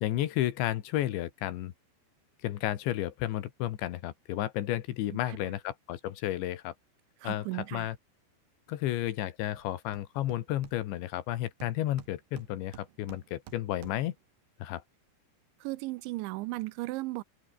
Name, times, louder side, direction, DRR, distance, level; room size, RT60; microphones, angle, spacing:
voice 1, 0.0-1.7 2.4-6.7 7.2-8.0 8.7-14.2 14.6-14.8, left 13 dB, 75° left, 3.7 m, -32 dB
voice 2, 7.2-7.9 15.6-17.2, right 20 dB, 90° right, 3.0 m, -36 dB
Hammer, 9.6-9.7 9.9-11.2 11.6-14.2, right 12 dB, 70° right, 3.7 m, -52 dB
open air
omnidirectional pair, 5.3 m